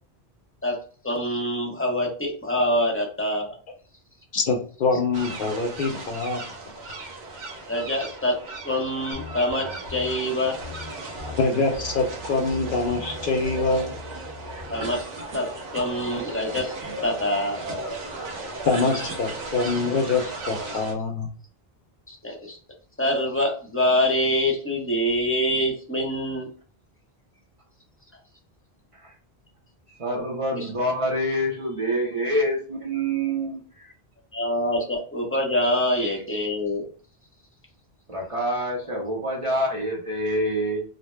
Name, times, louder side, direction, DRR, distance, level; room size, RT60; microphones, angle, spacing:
voice 1, 1.0-3.5 7.7-8.4 8.6-10.6 14.7-15.1 15.3-15.5 15.7-16.8 17.0-17.6 22.1-22.6 23.0-26.5 30.5-30.9 34.3-36.9, left 1 dB, 15° left, -1 dB, 0.7 m, -25 dB
voice 2, 4.3-6.5 11.4-13.9 18.7-21.3, left 3 dB, 60° left, 2 dB, 0.7 m, -24 dB
sound 1, 5.1-20.9, right 2 dB, 90° right, 1.0 m, -36 dB
sound 2, 9.1-10.2 10.6-10.9 11.2-11.5 11.7-15.0, left 4 dB, 65° right, 1.0 m, -40 dB
voice 3, 29.9-33.9 36.0-36.2 38.1-40.8, equal, 35° right, -2 dB, 0.7 m, -26 dB
2.6 x 2.1 x 3.2 m, 0.41 s
omnidirectional pair, 1.0 m